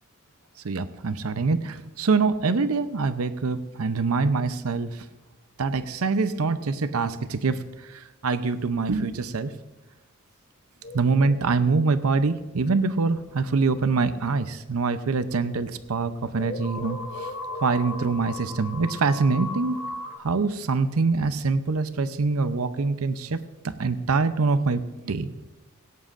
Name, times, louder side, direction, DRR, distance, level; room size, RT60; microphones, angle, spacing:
voice 1, 0.6-5.1 5.6-9.5 10.9-17.3 17.6-19.8 20.2-23.4 23.6-25.3, right 4 dB, 90° right, 11 dB, 0.7 m, -25 dB
sound 1, 10.8-13.2 13.8-13.9 15.6-15.7 15.9-20.2, left 2 dB, 45° left, 1.7 m, -37 dB
17.0 x 17.0 x 2.5 m, 1.1 s
head